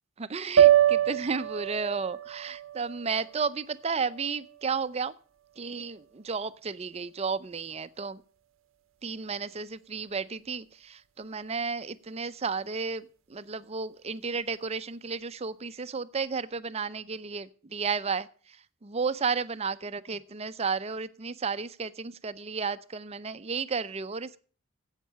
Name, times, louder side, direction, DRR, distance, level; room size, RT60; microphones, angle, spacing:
voice 1, 0.2-5.1 5.6-8.2 9.0-24.4, right 5 dB, 30° right, 15 dB, 0.5 m, -33 dB
sound 1, 0.6-4.8, right 11 dB, 85° right, 0.7 m, -25 dB
10.0 x 8.2 x 7.3 m, 0.43 s
head